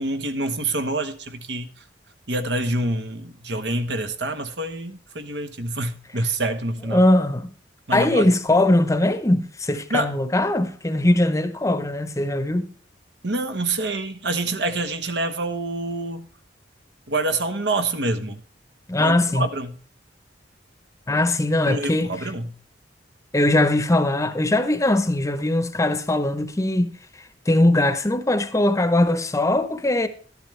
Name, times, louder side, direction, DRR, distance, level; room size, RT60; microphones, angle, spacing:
voice 1, 0.0-1.7 2.3-7.0 7.9-8.3 9.9-10.1 13.2-16.3 17.1-18.4 19.0-19.7 21.7-22.5, right 2 dB, 75° right, 1.3 m, -26 dB
voice 2, 6.9-7.5 7.9-12.7 18.9-19.5 21.1-22.1 23.3-30.1, left 1 dB, 15° left, 0.8 m, -20 dB
12.0 x 11.0 x 3.3 m
head